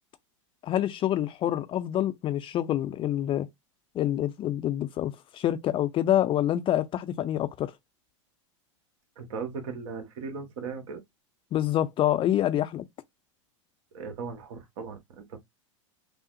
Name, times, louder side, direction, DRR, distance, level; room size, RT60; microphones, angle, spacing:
voice 1, 0.6-3.5 3.9-7.7 11.5-12.9, left 12 dB, 30° left, 0.5 m, -27 dB
voice 2, 9.2-11.0 13.9-15.4, right 5 dB, 60° right, 1.4 m, -37 dB
5.5 x 2.0 x 2.6 m
hypercardioid pair, 100°, 17 cm